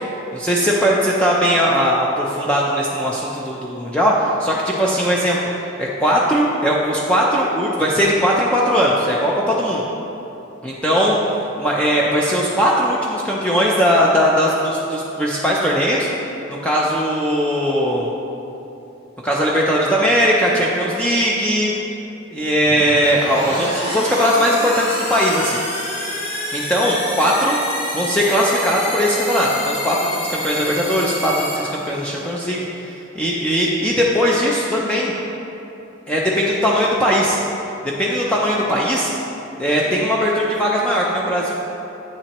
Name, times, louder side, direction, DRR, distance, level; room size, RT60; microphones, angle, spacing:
voice 1, 0.3-9.8 10.6-11.1 11.6-16.1 16.5-18.1 19.2-21.7 22.3-25.6 26.5-27.6 27.9-35.1 36.1-37.4 37.8-39.1 39.6-41.5, equal, 5° left, -4 dB, 0.5 m, -19 dB
sound 1, 22.6-32.3, left 1 dB, 30° left, 1.3 m, -28 dB
8.7 x 7.2 x 3.0 m, 3.0 s
head